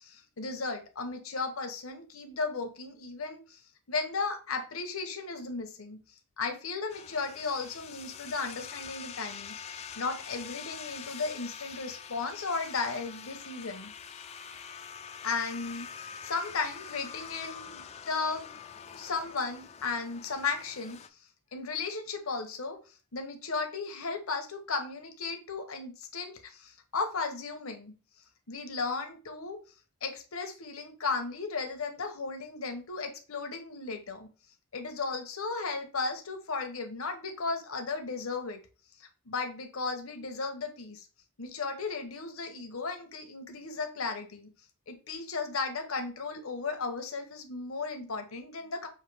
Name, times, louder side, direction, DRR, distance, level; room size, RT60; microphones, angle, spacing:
voice 1, 0.0-3.6 3.9-6.0 6.4-9.5 10.0-13.9 15.2-15.9 16.2-18.5 18.9-21.0 21.5-22.8 23.1-27.9 28.5-29.6 30.0-34.3 34.7-38.6 39.0-41.0 41.4-44.5 44.9-48.9, left 4 dB, 80° left, 5 dB, 1.0 m, -35 dB
sound 1, 6.9-21.1, left 7 dB, 30° left, 0.3 m, -45 dB
5.7 x 2.7 x 3.3 m, 0.35 s
head